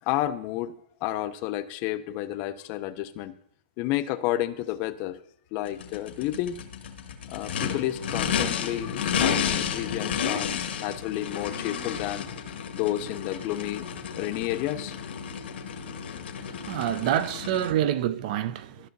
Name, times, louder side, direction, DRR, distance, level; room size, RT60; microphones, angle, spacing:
voice 1, 0.1-0.7 1.0-3.3 3.8-5.2 5.5-6.6 7.3-12.3 12.7-13.9 14.1-14.9, left 14 dB, 35° left, 0.4 m, -31 dB
Race car auto racing / Idling / Accelerating revving vroom, 5.7-17.7, left 7 dB, 80° left, 1.2 m, -32 dB
voice 2, 16.4-18.9, right 11 dB, 45° right, 0.4 m, -27 dB
13.0 x 5.6 x 2.6 m
hypercardioid pair, 150°, 6 cm